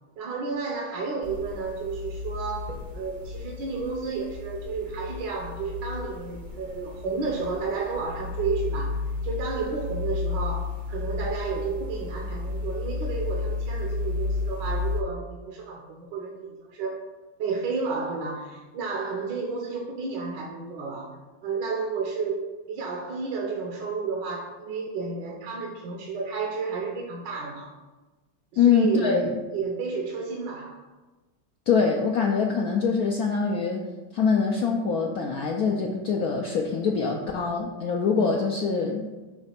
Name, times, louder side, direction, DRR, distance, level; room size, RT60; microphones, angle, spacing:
voice 1, 0.2-9.0 9.2-17.0 17.4-21.1 21.4-27.7 28.5-30.9 38.2-38.4, right 4 dB, 70° right, -1 dB, 1.4 m, -32 dB
sound 1, 1.2-15.0, left 3 dB, 45° right, 0.6 m, -33 dB
voice 2, 28.6-29.3 31.7-33.8 34.1-39.2, left 5 dB, 75° left, 1 dB, 0.8 m, -24 dB
6.0 x 3.2 x 5.7 m, 1.2 s
omnidirectional pair, 2.1 m